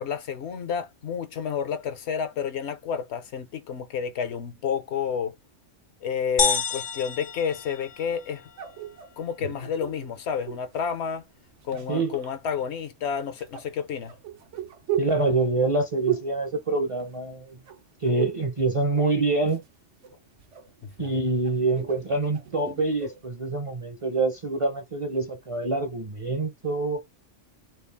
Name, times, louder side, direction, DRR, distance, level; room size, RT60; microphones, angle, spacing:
voice 1, 0.0-5.4 6.0-8.5 9.2-11.2 11.6-14.1 20.8-21.2, left 7 dB, 70° left, 0.9 m, -30 dB
sound 1, 6.4-8.3, left 6 dB, 55° left, 0.6 m, -28 dB
sound 2, 8.6-10.8 11.5-12.3 13.4-17.4 17.7-18.5 18.8-19.7 20.0-23.3, right 11 dB, 80° right, 1.1 m, -36 dB
voice 2, 15.0-17.6 18.0-19.6 21.0-27.0, right 3 dB, 35° right, 0.5 m, -26 dB
4.5 x 2.0 x 3.4 m
omnidirectional pair, 1.2 m